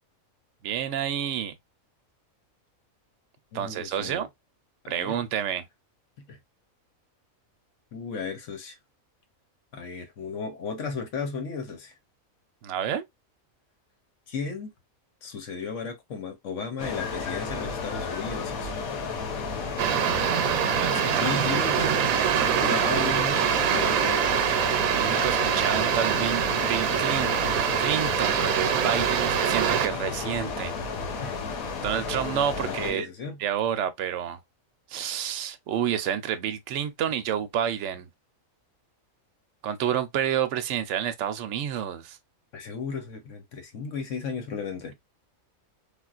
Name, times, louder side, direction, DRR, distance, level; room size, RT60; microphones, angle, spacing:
voice 1, 0.6-1.5 3.5-4.3 4.9-5.7 12.6-13.0 19.9-20.1 20.8-21.2 24.9-27.3 27.8-30.8 31.8-33.1 33.4-34.4 34.9-38.1 39.6-42.2, right 9 dB, 65° right, 0.8 m, -29 dB
voice 2, 3.5-4.3 4.8-5.2 6.2-6.4 7.9-8.8 9.7-11.9 14.3-14.7 15.2-18.7 21.1-22.2 22.5-24.5 29.0-29.1 31.2-31.4 32.6-33.4 42.5-45.0, left 5 dB, 65° left, 1.1 m, -35 dB
sound 1, 16.8-32.9, left 4 dB, 90° left, 1.3 m, -33 dB
sound 2, 19.8-29.9, right 9 dB, 85° right, 1.1 m, -24 dB
sound 3, 25.0-26.4, right 4 dB, 50° right, 0.4 m, -40 dB
3.5 x 2.4 x 2.3 m
omnidirectional pair, 1.4 m